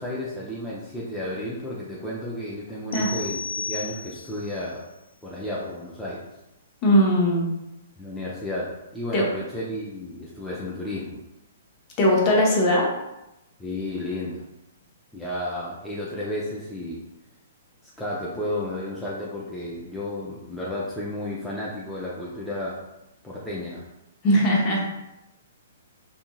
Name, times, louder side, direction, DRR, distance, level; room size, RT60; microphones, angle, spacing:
voice 1, 0.0-4.8 5.2-6.2 8.0-11.2 13.6-14.4 15.1-17.0 17.8-22.8 23.2-23.9, left 1 dB, 5° left, -7 dB, 0.5 m, -32 dB
sound 1, 2.9-4.5, left 5 dB, 75° left, 0.4 m, -33 dB
voice 2, 6.8-7.5 9.1-9.3 12.0-12.9 24.2-24.8, equal, 35° left, -3 dB, 0.8 m, -19 dB
2.7 x 2.5 x 2.2 m, 0.92 s
figure-of-eight pair, 120°, 0 cm